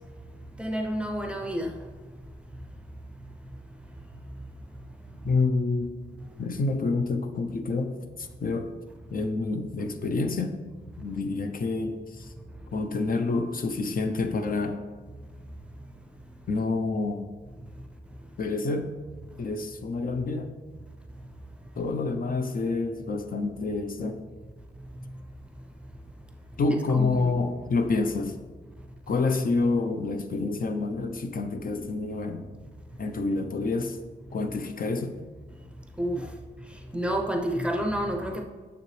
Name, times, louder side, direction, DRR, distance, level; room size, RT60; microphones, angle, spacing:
voice 1, 0.6-1.7 26.9-27.4 36.0-36.3 36.9-38.4, equal, 5° right, 0.6 m, -29 dB
voice 2, 5.2-5.9 6.4-7.9 8.2-8.7 9.1-10.6 11.0-12.3 12.7-14.8 16.5-17.3 18.4-18.9 19.4-20.5 21.8-24.2 26.6-28.3 29.1-32.5 33.0-34.0 34.3-35.1 36.2-36.3, left 3 dB, 50° left, 0.7 m, -28 dB
9.4 x 7.1 x 3.2 m
wide cardioid pair, 165°, 19 cm